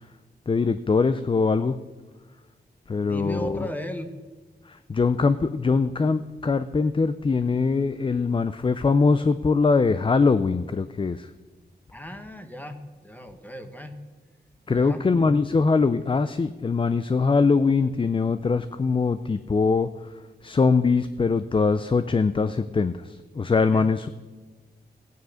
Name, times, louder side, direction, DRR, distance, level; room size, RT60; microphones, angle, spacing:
voice 1, 0.5-1.8 2.9-3.7 4.7-11.3 14.7-19.9 20.4-24.1, left 4 dB, 30° left, 12 dB, 0.5 m, -22 dB
voice 2, 2.9-4.1 11.9-14.0 14.7-15.1 23.7-23.9, equal, 10° left, 7 dB, 1.2 m, -36 dB
14.5 x 9.4 x 6.4 m, 1.3 s
wide cardioid pair, 105°, 18 cm